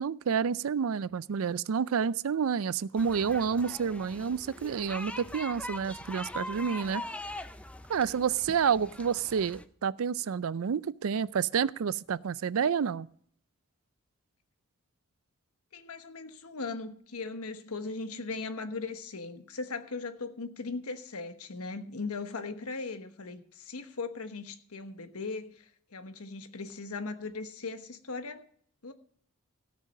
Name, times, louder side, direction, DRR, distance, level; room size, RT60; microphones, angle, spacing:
voice 1, 0.0-7.0 7.9-13.1, right 6 dB, 70° right, 0.4 m, -29 dB
sound 1, 3.0-9.6, left 1 dB, 5° left, 0.4 m, -42 dB
voice 2, 15.7-28.4 28.8-28.9, left 3 dB, 80° left, 1.2 m, -38 dB
17.0 x 6.3 x 5.4 m
head